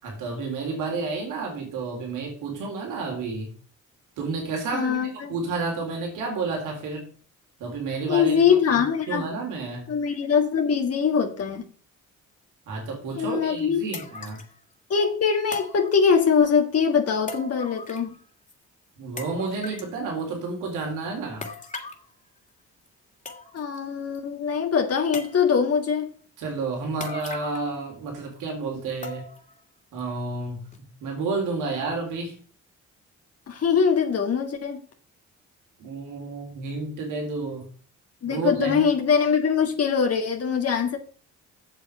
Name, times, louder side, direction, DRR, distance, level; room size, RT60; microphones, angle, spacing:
voice 1, 0.0-3.5 4.2-7.1 7.6-9.9 12.7-14.4 19.0-21.5 26.4-29.3 29.9-30.6 31.0-32.4 35.8-37.6 38.2-38.9, right 3 dB, 90° right, 3.9 m, -31 dB
voice 2, 4.7-5.3 8.1-9.3 9.9-11.7 13.2-13.8 14.9-18.2 23.5-26.1 33.5-34.8 38.2-41.0, left 6 dB, 55° left, 2.0 m, -22 dB
sound 1, 13.1-13.2 13.9-14.5 15.5-16.4 17.3-18.2 18.5-18.6 19.2-19.9 21.4-22.1 22.9-23.0 23.2-23.8 24.1-24.2 25.1-25.7 27.0-27.8 28.1-28.2 29.0-29.5 30.0-30.1 30.7-30.8, left 3 dB, 25° left, 2.6 m, -38 dB
8.1 x 7.2 x 6.8 m
cardioid pair, 90°, 30 cm